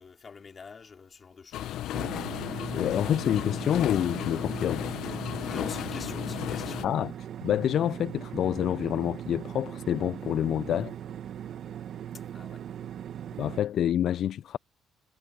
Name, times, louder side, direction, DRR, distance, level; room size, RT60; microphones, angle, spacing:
voice 1, 0.0-1.8 5.4-6.9 12.1-12.6, left 5 dB, 35° left, 3.9 m, -46 dB
sound 1, 1.5-6.9, left 13 dB, 75° left, 0.8 m, -34 dB
sound 2, 1.9-13.6, right 9 dB, 60° right, 1.2 m, -39 dB
voice 2, 2.7-4.8 6.8-7.1 7.4-10.9 13.4-14.6, left 10 dB, 60° left, 0.3 m, -27 dB
cardioid pair, 120°, 0 cm